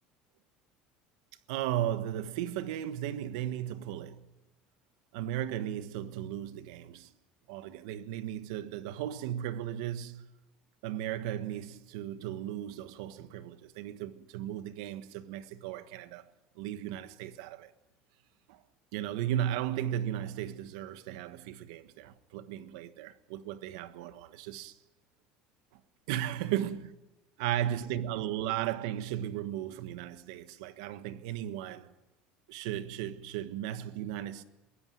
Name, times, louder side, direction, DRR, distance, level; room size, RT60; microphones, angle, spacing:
voice 1, 1.5-4.3 5.1-7.1 7.5-10.3 10.8-16.3 16.6-17.7 18.5-18.6 18.9-24.8 25.7-25.8 26.1-27.0 27.4-31.9 32.5-34.4, right 11 dB, 90° right, 1.4 m, -36 dB
22.5 x 16.0 x 9.4 m
cardioid pair, 170°, 3 cm